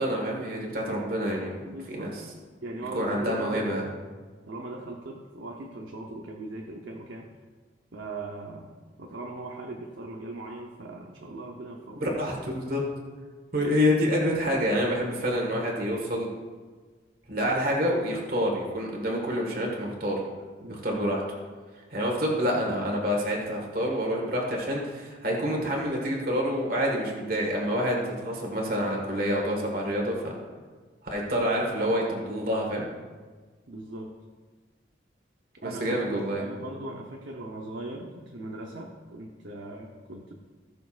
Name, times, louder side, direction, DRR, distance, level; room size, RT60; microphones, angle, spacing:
voice 1, 0.0-1.6 1.9-2.2 2.9-3.8 12.0-12.8 13.5-16.3 17.3-20.2 20.7-21.2 21.9-30.3 31.0-32.8 35.6-36.4, equal, 50° right, -1 dB, 1.7 m, -27 dB
voice 2, 1.4-2.2 2.6-3.8 4.5-7.3 7.9-8.7 9.0-12.2 20.6-21.0 31.3-32.2 33.7-34.1 35.6-40.3, right 2 dB, 75° right, 0 dB, 0.9 m, -39 dB
18.5 x 6.7 x 2.5 m, 1.4 s
head